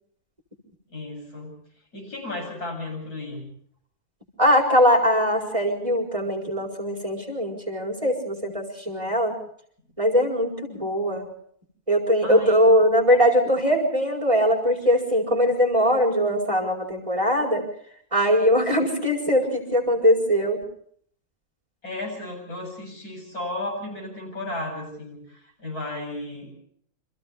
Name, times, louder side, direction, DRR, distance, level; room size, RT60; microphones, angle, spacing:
voice 1, 0.9-1.5 1.9-3.4 12.2-12.6 21.8-26.5, left 2 dB, 80° left, 2 dB, 8.7 m, -34 dB
voice 2, 4.4-9.4 10.0-11.3 11.9-17.6 18.1-20.6, equal, 20° right, 1 dB, 4.7 m, -21 dB
30.0 x 25.5 x 3.5 m, 0.62 s
omnidirectional pair, 1.6 m